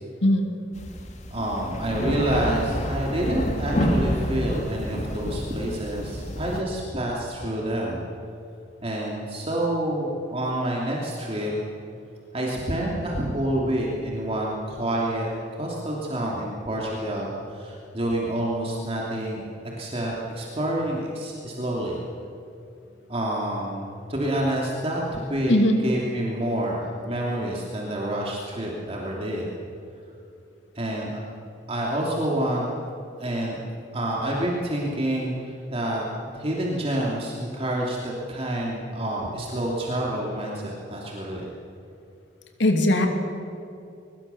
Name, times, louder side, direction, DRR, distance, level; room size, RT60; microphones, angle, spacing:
sound 1, 0.7-6.6, equal, 40° left, 2.2 m, -28 dB
voice 1, 1.3-8.0 8.8-11.5 12.3-19.5 19.8-22.0 23.1-25.6 25.8-29.5 30.7-31.2 31.7-32.7 33.2-33.6 33.9-41.5, right 1 dB, 35° right, -3 dB, 2.9 m, -28 dB
voice 2, 25.5-25.8 42.6-43.1, left 1 dB, 75° left, 4 dB, 2.6 m, -19 dB
22.5 x 21.5 x 7.1 m, 2.7 s
head